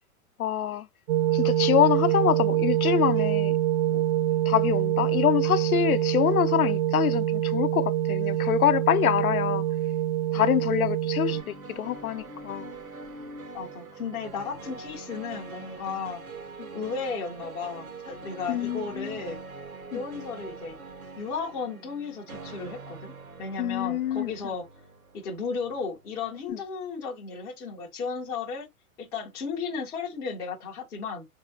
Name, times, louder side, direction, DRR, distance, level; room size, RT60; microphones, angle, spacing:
voice 1, 0.4-0.9 1.3-3.6 3.9-4.0 4.5-9.6 10.3-12.7 16.6-16.7 18.5-19.2 19.9-20.0 23.6-24.3 26.5-26.6, left 11 dB, 75° left, 0.6 m, -25 dB
sound 1, 1.1-11.4, right 13 dB, 50° right, 0.5 m, -25 dB
sound 2, 11.3-26.5, right 4 dB, 80° right, 1.2 m, -43 dB
voice 2, 13.5-16.2 16.7-19.4 19.9-20.8 21.2-23.1 23.4-24.7 25.1-28.7 29.0-31.3, left 5 dB, 10° left, 0.4 m, -34 dB
4.2 x 3.4 x 2.6 m
figure-of-eight pair, 110°, 43 cm